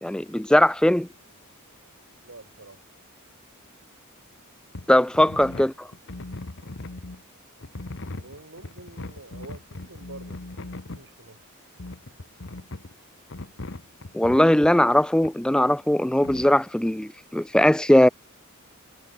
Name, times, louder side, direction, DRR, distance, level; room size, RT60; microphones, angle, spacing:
voice 1, 0.0-1.1 4.9-5.7 14.1-18.1, left 1 dB, 5° left, 0.4 m, -19 dB
voice 2, 2.2-2.9 8.1-11.5, right 2 dB, 60° right, 5.2 m, -47 dB
sound 1, 4.7-4.9 5.1-7.2 7.6-11.1 11.8-12.9 13.3-14.7 15.2-15.3 16.2-16.5, left 2 dB, 60° left, 1.3 m, -38 dB
head